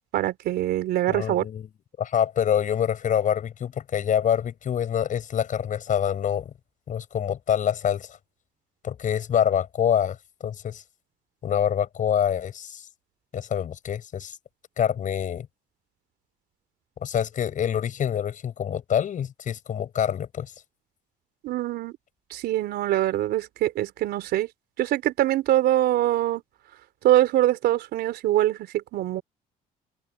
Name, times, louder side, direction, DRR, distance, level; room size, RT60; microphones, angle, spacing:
voice 1, 0.1-1.5 21.4-21.9 22.3-24.5 24.8-26.4 27.0-29.2, right 14 dB, 75° right, 4.0 m, -23 dB
voice 2, 1.1-1.7 2.0-6.5 6.9-8.2 8.8-10.8 11.4-12.8 13.3-14.4 14.8-15.5 17.0-20.5, left 9 dB, 50° left, 6.5 m, -26 dB
cardioid pair, 110°, 17 cm